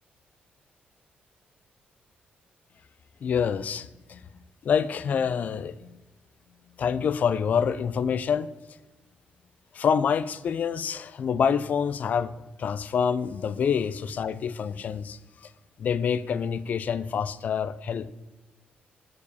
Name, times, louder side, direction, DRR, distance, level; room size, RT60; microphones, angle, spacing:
voice 1, 3.2-4.3 4.6-5.9 6.8-8.5 9.7-12.3 12.6-15.5 15.8-18.1, left 7 dB, 45° left, 16 dB, 0.4 m, -27 dB
7.0 x 4.9 x 6.8 m, 1.1 s
cardioid pair, 145°, 4 cm